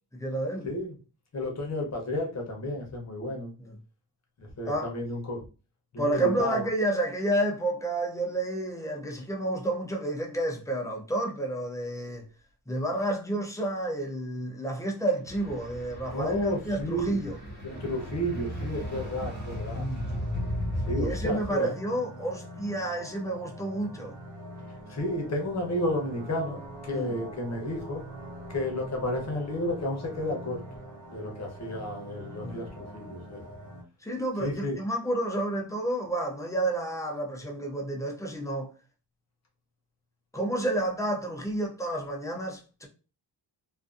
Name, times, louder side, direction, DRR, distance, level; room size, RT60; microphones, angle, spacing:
voice 1, 0.1-0.7 3.6-3.7 4.7-4.9 6.0-12.2 12.7-17.4 19.7-20.0 20.9-24.2 26.9-27.2 32.4-32.6 34.0-38.7 40.3-42.9, right 1 dB, 10° left, 0.4 m, -30 dB
voice 2, 0.6-0.9 1.3-3.5 4.4-5.4 5.9-6.6 16.1-17.2 17.6-19.9 20.9-21.7 24.9-28.0 28.5-30.6 31.1-33.4 34.4-34.7, left 1 dB, 40° left, 0.7 m, -32 dB
sound 1, 15.3-21.3, equal, 25° right, 1.2 m, -35 dB
sound 2, 17.7-33.8, right 1 dB, 50° right, 0.8 m, -44 dB
2.4 x 2.4 x 2.3 m
wide cardioid pair, 170°, 42 cm